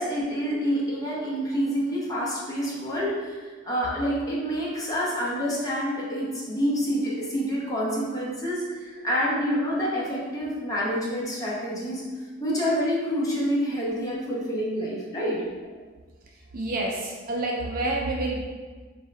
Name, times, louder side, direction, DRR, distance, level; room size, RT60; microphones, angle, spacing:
voice 1, 0.0-3.3 3.6-12.0 12.4-15.4, equal, 20° left, -6 dB, 0.9 m, -27 dB
voice 2, 16.3-18.4, right 2 dB, 45° right, -1 dB, 0.5 m, -29 dB
4.4 x 2.7 x 3.3 m, 1.4 s
head